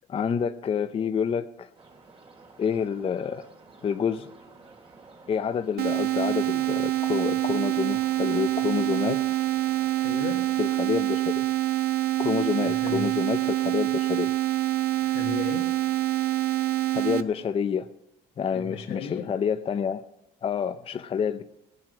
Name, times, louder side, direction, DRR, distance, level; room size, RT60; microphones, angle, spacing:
voice 1, 0.1-1.7 2.6-3.5 3.8-4.3 5.3-9.4 10.6-11.5 12.2-14.3 16.9-17.9 18.4-20.0 20.4-21.4, left 7 dB, 35° left, 0.5 m, -28 dB
sound 1, 1.7-11.0, right 3 dB, 35° right, 2.1 m, -51 dB
sound 2, 5.8-17.2, right 15 dB, 65° right, 0.8 m, -26 dB
voice 2, 10.0-10.6 12.6-13.1 15.0-15.8 18.5-19.3, left 7 dB, 85° left, 1.7 m, -36 dB
18.5 x 7.6 x 6.2 m
cardioid pair, 110°, 17 cm